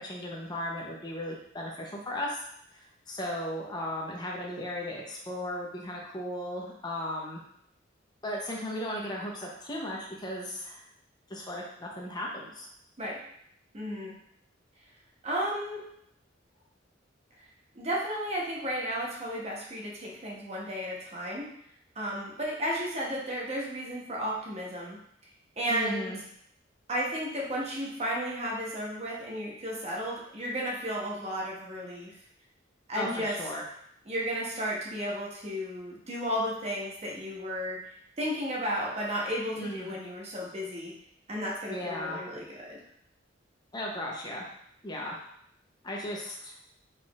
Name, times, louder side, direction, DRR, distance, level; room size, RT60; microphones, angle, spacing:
voice 1, 0.0-2.4 2.7-7.4 8.2-10.8 11.3-12.7 25.7-26.2 32.9-33.6 39.5-39.9 41.7-42.2 43.7-44.5 44.8-45.3 45.8-46.5, left 1 dB, 20° left, -2 dB, 0.7 m, -36 dB
voice 2, 13.7-14.2 15.2-15.9 17.7-21.5 22.0-25.0 25.6-26.1 26.9-32.2 32.9-33.4 34.1-41.0 41.3-42.8, equal, 35° right, -3 dB, 0.9 m, -33 dB
4.0 x 3.6 x 2.4 m, 0.70 s
head